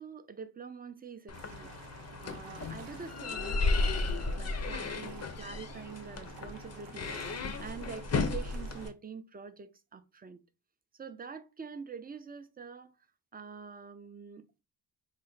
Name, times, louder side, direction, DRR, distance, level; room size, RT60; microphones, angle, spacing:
voice 1, 0.0-1.7 2.2-7.2 7.6-10.4 10.9-12.9 13.3-14.6, right 6 dB, 25° right, 0.3 m, -46 dB
sound 1, 1.3-8.9, left 3 dB, 40° left, 0.5 m, -34 dB
sound 2, 1.3-8.9, right 6 dB, 90° right, 0.6 m, -50 dB
3.8 x 2.1 x 3.9 m
cardioid pair, 95°, 41 cm